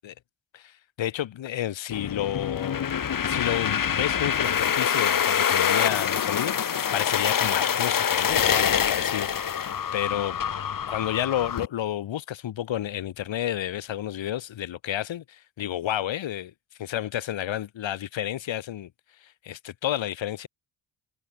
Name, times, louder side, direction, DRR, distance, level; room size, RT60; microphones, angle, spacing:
voice 1, 0.5-2.9 3.2-9.3 9.6-10.4 10.9-16.5 16.8-18.9 19.2-20.5, left 11 dB, 75° left, 6.4 m, -31 dB
sound 1, 1.9-11.7, left 8 dB, 45° left, 1.8 m, -25 dB
cardioid pair, 90°, 46 cm